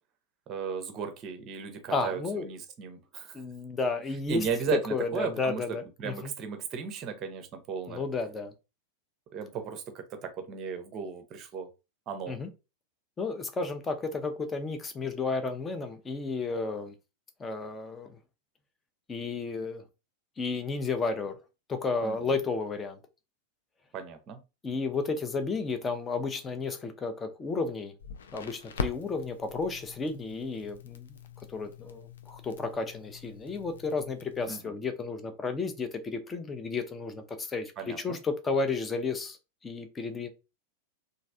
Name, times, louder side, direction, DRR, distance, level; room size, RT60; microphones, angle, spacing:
voice 1, 0.5-3.4 4.3-5.6 6.0-8.0 9.3-11.7 12.1-12.4 22.0-22.2 23.9-24.4 34.5-34.7 37.8-38.2, right 6 dB, 30° right, 0.6 m, -35 dB
voice 2, 1.9-2.5 3.3-4.4 4.9-6.3 7.9-8.5 12.3-12.5 13.2-16.9 17.4-18.2 19.1-19.8 20.4-21.4 21.7-23.0 24.6-27.9 28.3-31.2 31.5-39.4 39.6-40.3, left 4 dB, 20° left, 0.6 m, -32 dB
Crackle, 28.0-34.5, left 5 dB, 65° left, 0.4 m, -42 dB
3.1 x 2.5 x 2.5 m
figure-of-eight pair, 90°, 0 cm